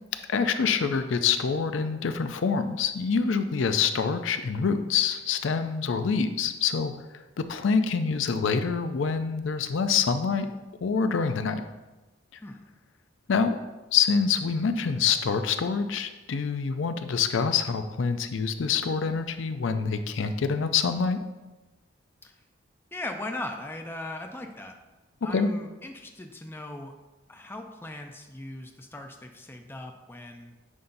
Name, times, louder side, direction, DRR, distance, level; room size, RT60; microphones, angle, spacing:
voice 1, 0.3-6.9 7.5-10.5 10.8-11.6 13.3-13.6 13.9-21.2 25.3-25.5, left 5 dB, 70° left, 9 dB, 0.4 m, -26 dB
voice 2, 22.9-24.7 25.2-26.9 27.3-30.5, left 2 dB, 10° left, 4 dB, 0.5 m, -39 dB
9.6 x 5.4 x 2.6 m, 1.1 s
head